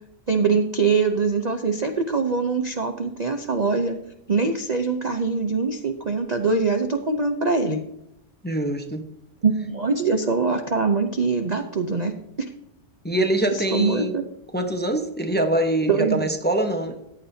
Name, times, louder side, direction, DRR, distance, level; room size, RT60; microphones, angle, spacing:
voice 1, 0.3-4.0 4.3-7.8 9.4-12.1 13.5-14.2 15.9-16.3, right 4 dB, 40° right, 5 dB, 0.6 m, -23 dB
voice 2, 8.4-9.0 13.0-14.2 14.5-17.0, right 1 dB, 10° left, 5 dB, 0.8 m, -24 dB
14.5 x 9.5 x 2.8 m, 0.82 s
omnidirectional pair, 1.6 m